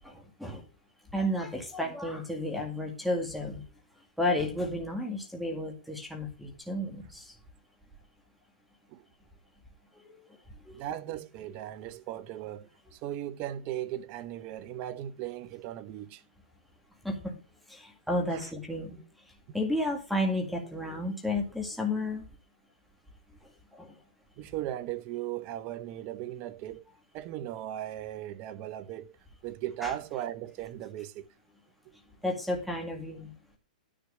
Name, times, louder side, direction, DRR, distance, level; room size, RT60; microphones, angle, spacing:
voice 1, 0.0-0.6 1.1-3.6 4.2-7.3 9.9-10.1 10.7-10.8 11.8-11.9 17.0-17.3 17.7-19.0 19.5-22.3 23.7-24.0 29.8-29.9 32.2-33.3, left 1 dB, ahead, 2.0 m, -32 dB
voice 2, 10.7-16.2 18.3-18.5 24.4-26.8 27.1-29.2 29.4-31.3, right 12 dB, 35° right, 0.8 m, -37 dB
10.0 x 4.6 x 6.4 m
hypercardioid pair, 140°, 5 cm